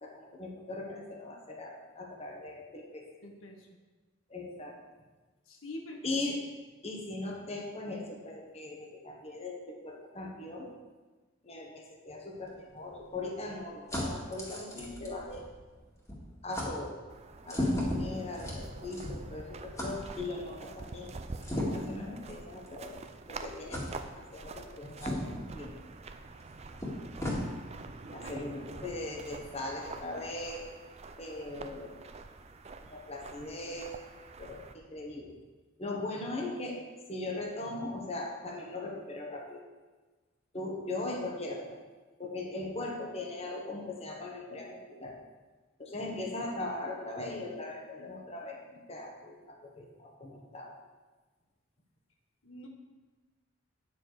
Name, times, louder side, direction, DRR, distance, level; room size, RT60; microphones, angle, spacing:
voice 1, 0.0-3.1 4.3-4.8 6.0-6.4 6.8-10.7 11.4-15.4 16.4-16.9 17.4-21.1 21.5-23.0 23.3-23.8 24.2-25.7 28.1-30.7 31.2-32.0 32.8-33.9 34.4-35.3 35.8-39.6 40.5-41.8 42.2-45.2 45.8-50.7, left 2 dB, 30° left, 0 dB, 1.3 m, -39 dB
voice 2, 3.2-3.7 5.5-6.0 28.2-28.4 52.4-52.7, left 1 dB, 80° left, 2 dB, 1.3 m, -45 dB
sound 1, 12.3-15.8 16.1-16.2 16.5-16.7 17.4-19.3 19.8-19.9 21.4-22.0 22.7-22.8 23.7-23.9 25.0-25.4 26.4-26.5 26.8-27.4, left 1 dB, 15° left, 2.0 m, -35 dB
sound 2, 17.1-34.7, right 3 dB, 30° right, 0.5 m, -46 dB
9.8 x 7.2 x 4.8 m, 1.3 s
head